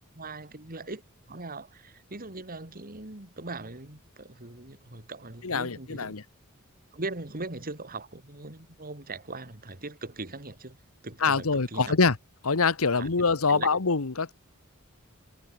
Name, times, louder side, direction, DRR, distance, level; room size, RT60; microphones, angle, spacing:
voice 1, 0.1-1.0 1.3-6.1 6.9-10.8 11.0-11.9 12.9-13.1 13.5-13.7, right 2 dB, 45° right, 3.1 m, -40 dB
voice 2, 5.4-6.2 11.2-12.2 12.4-14.3, left 4 dB, 80° left, 1.2 m, -24 dB
head